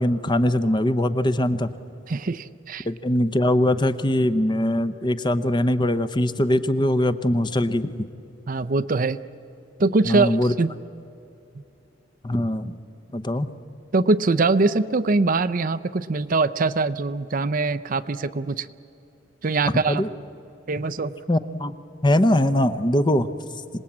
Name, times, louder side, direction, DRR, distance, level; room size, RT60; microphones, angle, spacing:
voice 1, 0.0-1.7 2.9-8.1 10.1-10.5 12.2-12.7 13.1-13.5 19.9-20.1 21.3-21.7 22.0-23.3, left 1 dB, 25° left, 11 dB, 0.7 m, -21 dB
voice 2, 2.1-2.9 8.5-9.2 9.8-10.7 13.9-18.7 19.4-20.0 20.7-21.1, right 3 dB, 45° right, 11 dB, 0.5 m, -22 dB
26.0 x 19.0 x 8.7 m, 2.7 s
head